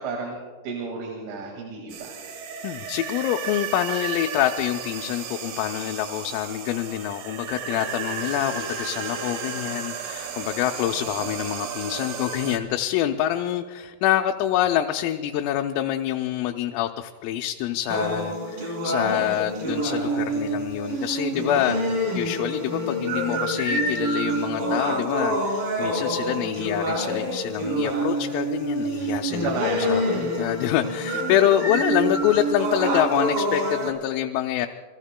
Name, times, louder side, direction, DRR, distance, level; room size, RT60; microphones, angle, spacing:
voice 1, 0.0-2.2 11.2-11.3 21.5-21.9 29.4-30.3 31.1-31.2, right 3 dB, 70° right, 0 dB, 4.3 m, -32 dB
sound 1, 1.9-12.6, right 7 dB, 90° right, 1.9 m, -34 dB
voice 2, 2.6-34.7, left 12 dB, 85° left, 3 dB, 3.3 m, -26 dB
sound 2, 17.9-33.9, right 1 dB, 40° right, 2.3 m, -27 dB
27.5 x 21.5 x 2.2 m, 1.5 s
omnidirectional pair, 5.8 m